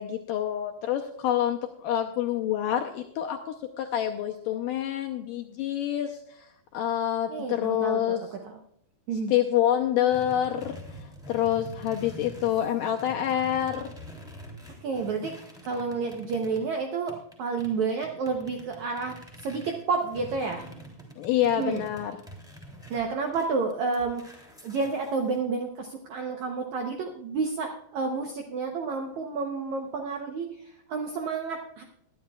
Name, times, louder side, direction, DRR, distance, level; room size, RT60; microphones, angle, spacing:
voice 1, 0.0-8.3 9.3-13.9 21.2-22.2, left 11 dB, 85° left, 3 dB, 1.9 m, -27 dB
voice 2, 7.3-8.6 9.1-9.3 14.8-15.3 15.6-20.7 21.6-21.8 22.9-31.8, right 4 dB, 75° right, 3 dB, 1.7 m, -30 dB
sound 1, 10.1-16.7 17.1-25.4, right 1 dB, ahead, 2.5 m, -46 dB
20.0 x 12.0 x 2.4 m, 0.76 s
omnidirectional pair, 4.6 m